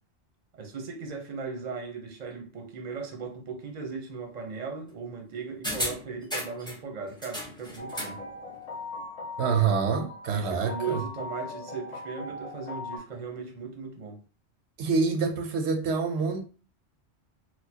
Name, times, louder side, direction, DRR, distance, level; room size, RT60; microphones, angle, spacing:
voice 1, 0.5-8.2 10.3-14.2, right 5 dB, 45° right, 0.7 m, -37 dB
sound 1, 5.6-6.8 7.2-8.2 8.5-8.6, equal, 5° left, 0.7 m, -34 dB
sound 2, 7.8-13.0, left 2 dB, 40° left, 0.6 m, -39 dB
voice 2, 9.4-11.0 14.8-16.4, right 5 dB, 85° right, 0.9 m, -26 dB
4.2 x 2.1 x 2.8 m
omnidirectional pair, 1.1 m